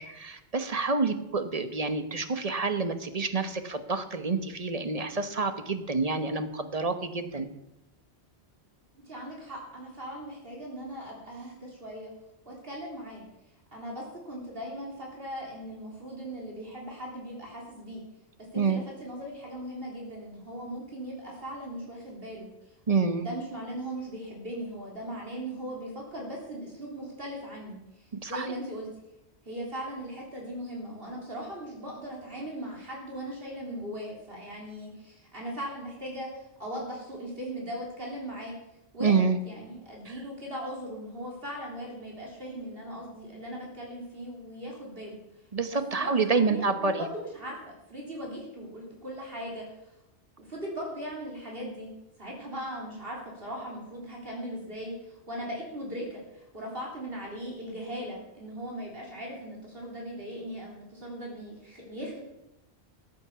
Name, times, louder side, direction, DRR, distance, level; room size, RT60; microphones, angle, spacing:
voice 1, 0.0-7.5 18.6-18.8 22.9-23.3 28.2-28.5 39.0-39.4 40.1-40.2 45.5-47.1, right 4 dB, 35° right, 9 dB, 1.1 m, -28 dB
voice 2, 9.0-12.1 12.5-13.2 13.7-18.0 18.5-22.5 22.9-27.8 28.3-28.9 29.5-38.5 38.9-45.2 45.7-47.6 47.9-49.7 50.4-51.9 52.2-62.2, equal, 55° right, -3 dB, 3.6 m, -39 dB
14.5 x 8.6 x 7.0 m, 0.89 s
omnidirectional pair, 1.1 m